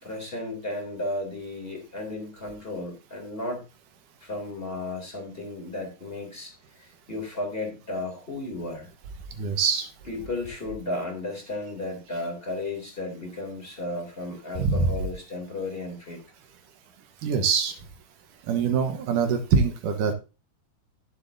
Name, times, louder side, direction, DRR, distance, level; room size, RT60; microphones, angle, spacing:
voice 1, 0.0-3.6 4.2-6.5 6.8-8.9 10.1-16.2, left 2 dB, 15° left, 2 dB, 3.0 m, -34 dB
voice 2, 9.4-9.9 14.6-14.9 17.2-17.8 18.5-20.1, right 5 dB, 65° right, 6 dB, 2.4 m, -24 dB
14.0 x 7.3 x 2.7 m, 0.30 s
omnidirectional pair, 4.6 m